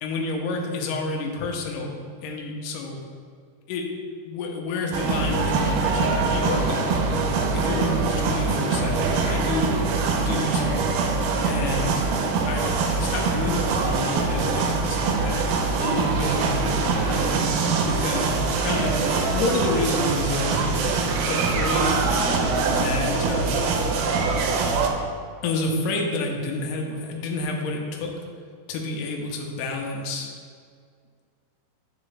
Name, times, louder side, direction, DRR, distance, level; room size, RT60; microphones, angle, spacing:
voice 1, 0.0-2.0 2.2-3.0 3.7-3.9 4.3-6.9 7.5-9.7 10.1-10.8 11.4-12.1 12.5-15.5 15.8-17.3 17.8-19.0 19.3-20.9 21.3-22.0 22.6-23.8 25.4-28.1 28.7-30.3, left 2 dB, 75° left, 1 dB, 2.0 m, -29 dB
sound 1, 4.9-24.9, right 4 dB, 90° right, 2.5 m, -23 dB
9.6 x 3.6 x 3.3 m, 2.1 s
omnidirectional pair, 4.3 m